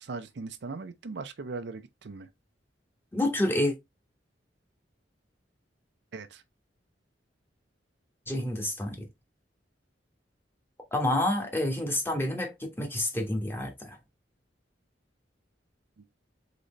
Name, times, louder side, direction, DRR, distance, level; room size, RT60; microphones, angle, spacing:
voice 1, 0.0-2.3 6.1-6.4, right 4 dB, 65° right, 0.5 m, -39 dB
voice 2, 3.1-3.7 8.3-9.1 10.9-14.0, left 1 dB, 10° left, 1.2 m, -28 dB
4.1 x 3.9 x 3.2 m
head